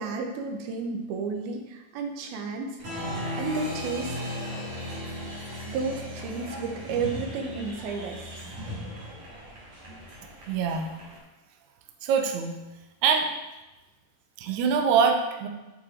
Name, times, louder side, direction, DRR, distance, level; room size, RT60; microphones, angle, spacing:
voice 1, 0.0-3.0 3.4-4.2 5.7-8.4, right 4 dB, 75° right, 3 dB, 2.8 m, -32 dB
Applause, 2.8-11.2, left 1 dB, 50° right, 3.2 m, -37 dB
voice 2, 10.5-10.9 12.0-12.5 13.0-13.6 14.4-15.5, right 6 dB, 90° right, 4 dB, 1.6 m, -24 dB
8.5 x 6.9 x 4.3 m, 1.0 s
omnidirectional pair, 4.6 m